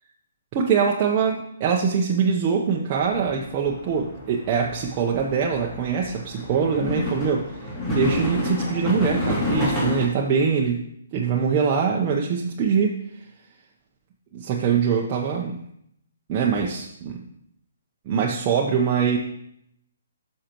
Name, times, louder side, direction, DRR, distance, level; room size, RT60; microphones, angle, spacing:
voice 1, 0.5-10.8 11.1-13.0 14.3-15.6 16.3-17.3 18.1-19.2, right 6 dB, 30° right, -1 dB, 0.7 m, -23 dB
Trains of the Yamanote Line, 3.0-10.1, left 1 dB, 20° left, 2.8 m, -29 dB
11.0 x 6.5 x 3.0 m, 0.75 s
hypercardioid pair, 150°, 0 cm